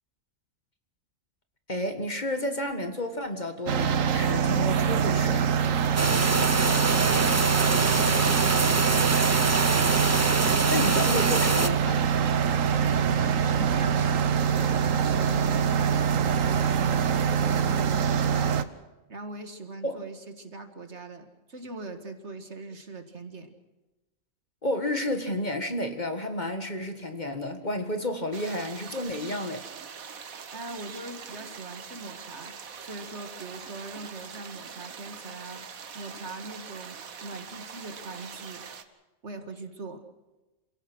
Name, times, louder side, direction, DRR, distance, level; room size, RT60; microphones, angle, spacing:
voice 1, 1.7-5.5 10.7-12.2 19.8-20.0 24.6-29.6, left 1 dB, 35° left, 7 dB, 1.8 m, -31 dB
sound 1, 3.7-18.6, right 7 dB, 70° right, 1.3 m, -24 dB
sound 2, 6.0-11.7, right 3 dB, 20° right, 0.4 m, -25 dB
voice 2, 6.3-9.5 12.8-18.6 19.1-23.5 30.5-35.6 35.9-38.6 39.2-40.0, right 2 dB, 55° right, 8 dB, 2.1 m, -41 dB
sound 3, 28.3-38.8, right 6 dB, 85° right, 1.7 m, -43 dB
27.5 x 17.5 x 6.2 m, 1.1 s
omnidirectional pair, 1.4 m